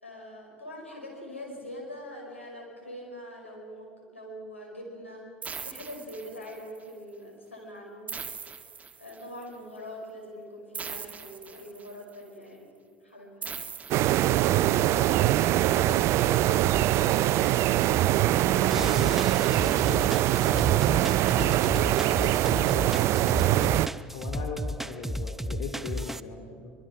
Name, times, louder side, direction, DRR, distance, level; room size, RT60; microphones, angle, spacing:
voice 1, 0.0-5.3 5.6-8.1 9.0-13.5 14.2-20.6 21.0-23.4, equal, 85° left, -1 dB, 5.4 m, -43 dB
the cube sampleo agudillo, 5.4-6.8 8.1-9.4 10.7-12.1 13.4-14.8, right 6 dB, 25° right, 1.7 m, -40 dB
sound 1, 13.9-23.9, right 14 dB, 45° right, 0.5 m, -23 dB
sound 2, 18.7-26.2, equal, 5° right, 0.7 m, -34 dB
voice 2, 24.1-26.7, left 4 dB, 50° left, 4 dB, 2.8 m, -38 dB
24.0 x 23.0 x 6.1 m, 2.1 s
figure-of-eight pair, 70°, 6 cm